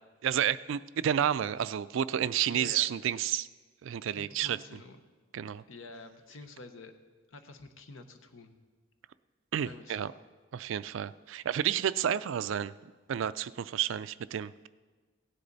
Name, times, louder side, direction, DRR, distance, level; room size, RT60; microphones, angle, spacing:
voice 1, 0.2-3.5 3.8-4.6 5.3-5.6 9.5-10.1 10.5-12.7 13.1-14.7, right 9 dB, 70° right, 16 dB, 0.3 m, -30 dB
voice 2, 2.5-2.9 4.1-5.0 5.7-6.9 7.3-8.5 9.7-10.1, left 3 dB, 75° left, 7 dB, 1.0 m, -48 dB
16.5 x 9.9 x 4.0 m, 1.4 s
head